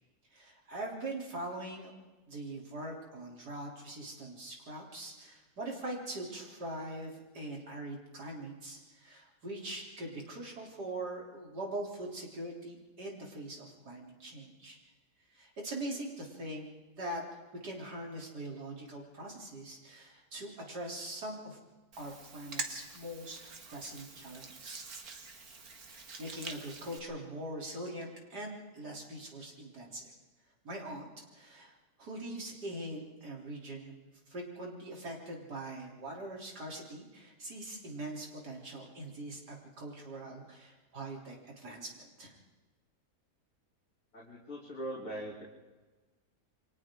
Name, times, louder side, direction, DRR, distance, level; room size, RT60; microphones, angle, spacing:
voice 1, 0.3-1.9 2.3-14.8 15.3-16.7 17.0-17.2 17.6-21.6 22.0-24.8 25.9-30.1 30.6-31.1 31.3-33.9 34.3-42.3, right 1 dB, 85° right, -2 dB, 4.0 m, -42 dB
Hands, 21.9-27.0, right 4 dB, 65° right, 2.1 m, -45 dB
voice 2, 44.1-45.5, right 1 dB, 55° left, -6 dB, 3.9 m, -41 dB
29.0 x 23.5 x 3.8 m, 1.2 s
omnidirectional pair, 1.7 m